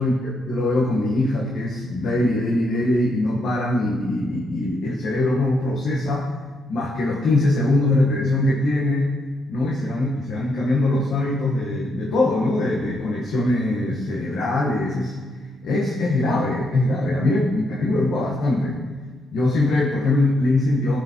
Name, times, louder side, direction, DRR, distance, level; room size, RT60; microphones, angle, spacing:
voice 1, 0.0-6.3 6.7-9.1 9.5-15.1 15.6-18.8 19.3-21.0, left 2 dB, 70° left, -4 dB, 1.2 m, -22 dB
13.5 x 4.9 x 2.9 m, 1.4 s
cardioid pair, 90°, 0 cm